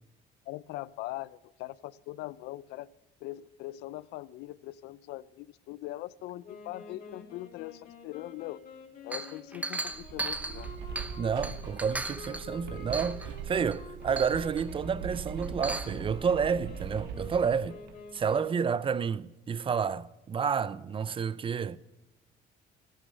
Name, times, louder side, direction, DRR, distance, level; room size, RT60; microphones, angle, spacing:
voice 1, 0.5-2.9 3.2-8.6 9.0-10.7, left 16 dB, 85° left, 0.5 m, -41 dB
Wind instrument woodwind instrument, 6.4-18.9, left 4 dB, 55° left, 2.8 m, -49 dB
Chink clink, 9.1-11.2 11.4-12.5 12.9-13.3 13.7-13.8 14.2-14.7 15.4-16.0, right 2 dB, 10° right, 0.9 m, -36 dB
sound 1, 9.8-18.4, right 7 dB, 85° right, 1.2 m, -41 dB
voice 2, 11.2-17.8 18.1-21.8, right 6 dB, 30° right, 0.5 m, -30 dB
12.5 x 11.5 x 6.7 m
cardioid pair, 110°, 17 cm